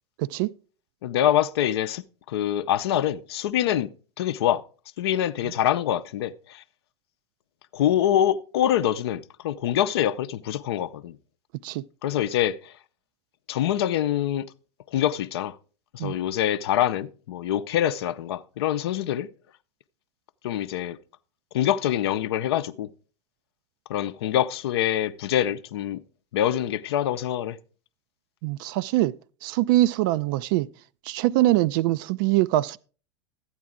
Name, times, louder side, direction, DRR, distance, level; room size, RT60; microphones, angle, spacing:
voice 1, 0.2-0.5 11.6-11.8 16.0-16.1 28.4-29.2 29.4-30.7 31.1-32.8, right 16 dB, 45° right, 0.4 m, -23 dB
voice 2, 1.0-3.9 4.2-4.6 5.0-6.6 7.7-11.2 12.0-12.7 13.5-14.5 14.9-15.6 15.9-19.3 20.4-21.0 21.5-22.9 23.9-26.0 26.3-27.6, left 11 dB, 55° left, 0.6 m, -25 dB
12.5 x 8.8 x 3.6 m
figure-of-eight pair, 80°, 15 cm